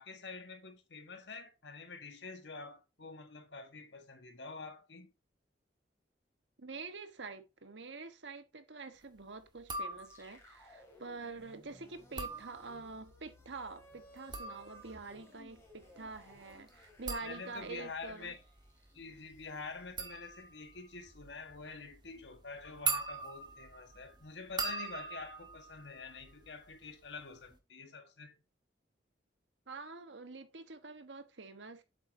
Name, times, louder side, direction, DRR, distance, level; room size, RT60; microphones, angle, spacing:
voice 1, 0.0-5.1 17.2-18.4 18.9-28.4, left 4 dB, 70° left, 1.5 m, -47 dB
voice 2, 6.6-18.3 29.7-31.8, right 3 dB, 80° right, 1.3 m, -46 dB
sound 1, 9.6-10.4 12.0-13.1 14.0-26.8 27.0-27.6, right 4 dB, 25° right, 1.4 m, -42 dB
sound 2, 10.0-20.2, left 1 dB, 15° left, 2.5 m, -60 dB
8.4 x 7.2 x 2.7 m
head